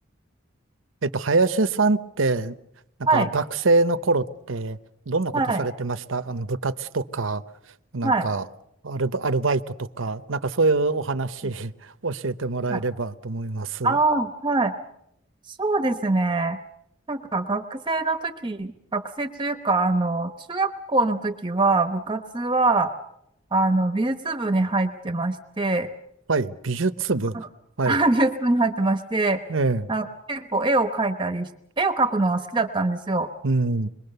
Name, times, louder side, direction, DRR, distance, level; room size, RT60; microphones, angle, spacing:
voice 1, 1.0-2.6 3.1-4.8 5.1-7.4 7.9-8.4 8.8-14.0 26.3-27.4 27.8-28.0 29.5-29.9 33.4-33.9, right 3 dB, 75° right, 12 dB, 0.9 m, -24 dB
voice 2, 13.8-14.7 15.5-16.6 17.1-22.9 23.5-25.9 27.3-27.5 27.9-29.4 29.9-31.5 31.8-33.3, right 2 dB, 25° right, 8 dB, 1.0 m, -23 dB
26.5 x 22.5 x 6.8 m, 0.80 s
head